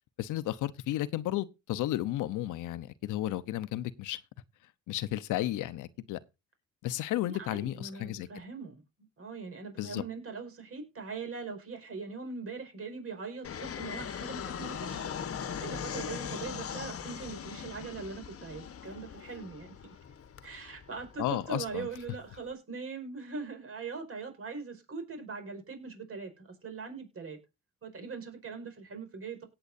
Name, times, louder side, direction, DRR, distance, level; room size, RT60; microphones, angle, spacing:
voice 1, 0.2-4.2 4.9-6.2 6.8-8.3 9.8-10.0 21.2-21.9, left 14 dB, 90° left, 0.9 m, -33 dB
voice 2, 7.2-8.8 9.2-19.8 20.4-27.4 27.8-29.4, right 4 dB, 50° right, 4.8 m, -41 dB
Fixed-wing aircraft airplane, 13.4-22.5, left 7 dB, 50° left, 1.2 m, -40 dB
17.5 x 7.9 x 2.6 m
cardioid pair, 90°, 30 cm